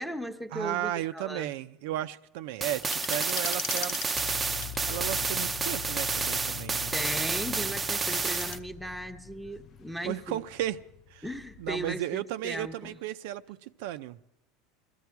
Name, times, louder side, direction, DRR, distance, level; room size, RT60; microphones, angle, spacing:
voice 1, 0.0-1.5 6.9-10.4 11.2-13.0, right 1 dB, ahead, 0.9 m, -37 dB
voice 2, 0.5-4.0 4.8-6.9 10.0-10.8 11.1-11.2 11.6-14.2, right 13 dB, 70° right, 0.5 m, -34 dB
sound 1, 2.6-8.6, right 4 dB, 15° right, 0.6 m, -30 dB
sound 2, 2.8-5.6 7.7-8.6, left 10 dB, 60° left, 1.0 m, -39 dB
sound 3, 4.1-12.0, left 8 dB, 35° left, 0.5 m, -43 dB
21.5 x 14.0 x 4.7 m
supercardioid pair, 135°, 0 cm